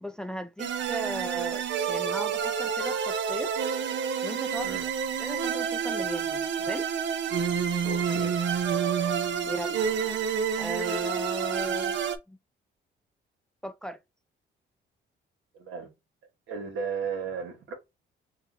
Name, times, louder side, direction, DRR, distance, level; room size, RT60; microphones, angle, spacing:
voice 1, 0.0-3.6 4.2-4.7 5.2-6.9 9.5-9.8 10.6-12.0 12.3-12.4 13.6-14.0, right 1 dB, 5° left, 0.5 m, -37 dB
sound 1, 0.6-12.2, right 7 dB, 65° right, 0.8 m, -29 dB
voice 2, 7.8-8.4 15.5-15.9 16.5-17.7, right 5 dB, 85° right, 2.0 m, -34 dB
3.9 x 2.7 x 4.0 m
cardioid pair, 90°, 20 cm